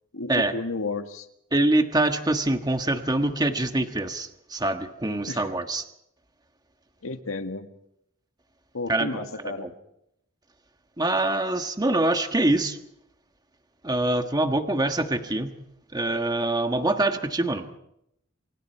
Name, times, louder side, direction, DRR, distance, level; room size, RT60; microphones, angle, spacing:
voice 1, 0.1-1.3 5.3-5.5 7.0-7.7 8.7-9.8, left 3 dB, 80° left, 7 dB, 1.7 m, -32 dB
voice 2, 1.5-5.8 8.9-9.2 9.6-9.7 11.0-12.8 13.8-15.5 15.9-17.6, right 2 dB, 20° right, 6 dB, 1.4 m, -24 dB
29.0 x 25.0 x 4.5 m, 0.79 s
head